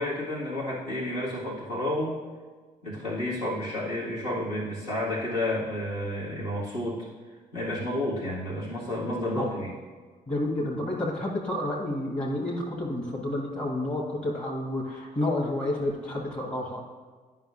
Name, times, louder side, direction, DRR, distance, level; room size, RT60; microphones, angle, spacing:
voice 1, 0.0-2.2 2.8-7.0 7.5-9.7, left 1 dB, 90° left, -9 dB, 1.8 m, -30 dB
voice 2, 10.3-16.8, left 1 dB, 35° left, -3 dB, 1.6 m, -30 dB
11.0 x 5.3 x 2.6 m, 1.4 s
hypercardioid pair, 40°, 20 cm